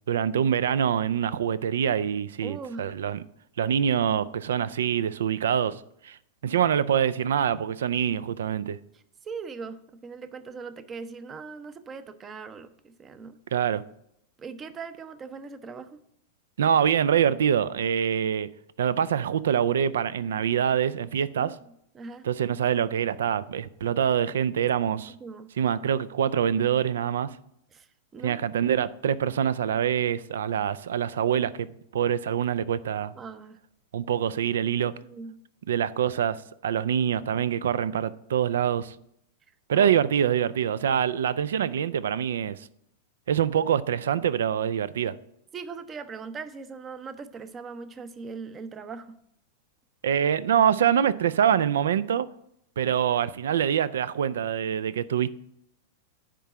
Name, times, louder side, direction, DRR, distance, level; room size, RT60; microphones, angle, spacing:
voice 1, 0.1-3.2 3.6-6.2 6.4-8.8 13.5-13.8 16.6-18.5 18.8-21.5 22.2-25.1 25.6-27.4 28.2-33.1 33.9-34.9 35.7-38.9 39.7-42.7 43.3-45.2 50.0-52.3 52.8-55.3, right 9 dB, 65° right, 0.4 m, -25 dB
voice 2, 2.4-2.9 8.9-13.4 14.4-16.0 21.4-21.6 21.9-22.2 25.2-25.5 27.7-28.6 33.2-33.6 35.0-35.3 39.7-40.1 45.5-49.2, right 5 dB, 25° right, 0.7 m, -40 dB
10.0 x 3.8 x 7.2 m
figure-of-eight pair, 95°, 0 cm